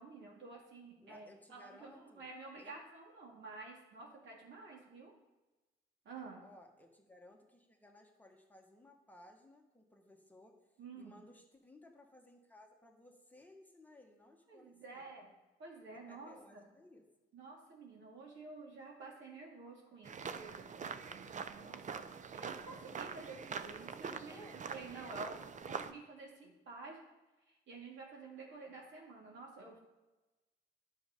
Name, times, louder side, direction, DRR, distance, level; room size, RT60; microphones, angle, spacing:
voice 1, 0.0-1.9 2.2-5.1 6.0-6.4 10.8-11.1 14.5-15.3 15.6-16.6 17.3-22.0 22.3-25.4 25.7-27.0 27.5-29.8, right 3 dB, 70° right, -2 dB, 2.8 m, -51 dB
voice 2, 1.0-2.3 2.6-2.9 6.4-10.6 11.0-15.1 16.1-17.0 24.3-24.6, left 1 dB, 10° left, 1 dB, 1.4 m, -60 dB
sound 1, 20.0-25.9, right 6 dB, 40° right, 0.6 m, -44 dB
10.0 x 6.4 x 5.3 m, 1.1 s
cardioid pair, 90°, 20 cm